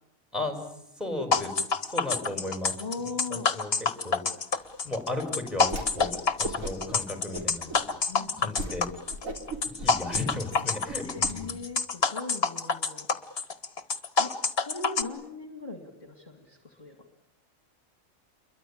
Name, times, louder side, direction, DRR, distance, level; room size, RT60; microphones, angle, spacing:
voice 1, 1.0-1.5 1.9-4.2 4.8-7.8 8.4-8.9 9.7-11.6, left 2 dB, ahead, 4 dB, 5.8 m, -35 dB
sound 1, 1.3-15.0, left 4 dB, 50° left, 1.6 m, -27 dB
voice 2, 2.8-3.5 8.1-8.5 11.0-13.1 14.2-14.3 14.6-16.9, left 4 dB, 30° left, 5 dB, 2.4 m, -39 dB
Whoosh swoosh swish, 5.6-6.1 6.4-6.9 7.3-7.8 8.2-8.3 8.6-8.8 9.1-11.3, right 1 dB, 80° right, 4.1 m, -36 dB
29.0 x 23.0 x 8.7 m, 0.79 s
omnidirectional pair, 1.4 m